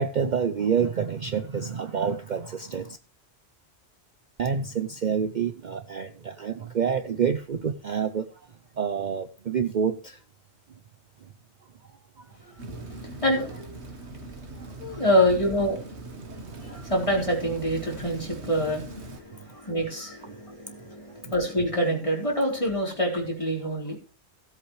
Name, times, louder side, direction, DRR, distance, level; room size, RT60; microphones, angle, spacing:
voice 1, 0.0-3.0 4.4-8.3 8.8-10.2 11.2-11.3 12.2-12.3 13.1-13.2 14.5-14.7 16.3-16.6 19.3-19.5 20.7-20.8 21.2-21.3, right 7 dB, 50° right, 0.7 m, -28 dB
voice 2, 12.5-13.8 14.8-15.8 16.6-24.0, equal, 30° left, 3.9 m, -26 dB
Rain, 12.6-19.2, right 2 dB, 75° right, 1.7 m, -40 dB
17.0 x 8.1 x 3.2 m
omnidirectional pair, 1.1 m